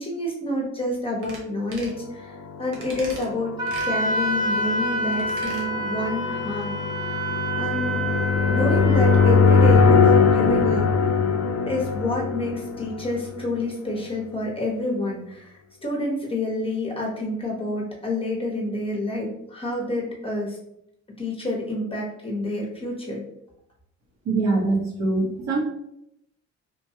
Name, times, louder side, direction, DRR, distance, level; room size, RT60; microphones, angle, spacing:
voice 1, 0.0-6.7 7.0-7.2 7.5-8.0 8.5-10.9 11.7-20.6 21.2-23.2, left 1 dB, 20° left, -2 dB, 0.8 m, -28 dB
sound 1, 1.2-1.4 1.7-2.0 2.7-3.3 3.7-3.9 5.1-5.7 6.0-6.1, right 2 dB, 90° right, 0.9 m, -40 dB
sound 2, 2.7-13.5, left 5 dB, 55° left, 0.5 m, -21 dB
Wind instrument woodwind instrument, 3.6-9.4, right 1 dB, 15° right, 0.8 m, -28 dB
voice 2, 24.2-25.6, right 3 dB, 60° right, -2 dB, 1.0 m, -23 dB
3.1 x 2.2 x 2.8 m, 0.76 s
cardioid pair, 90°, 30 cm